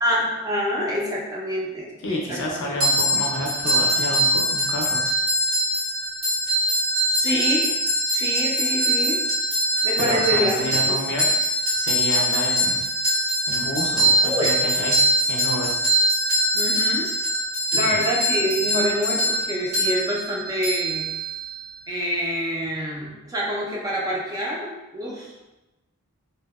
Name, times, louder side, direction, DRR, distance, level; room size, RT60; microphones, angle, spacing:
voice 1, 0.0-2.7 7.1-7.7 8.1-9.2 9.8-10.6 10.9-11.0 14.2-14.5 16.5-17.1 17.7-21.1 21.9-25.4, equal, 15° right, -3 dB, 0.3 m, -26 dB
voice 2, 2.0-5.0 10.0-11.3 11.8-12.8 13.5-15.0 15.3-15.7 17.7-18.0, left 1 dB, 55° left, -1 dB, 0.5 m, -29 dB
sound 1, 2.8-21.6, equal, 85° right, 1.2 m, -23 dB
2.7 x 2.0 x 2.2 m, 1.0 s
head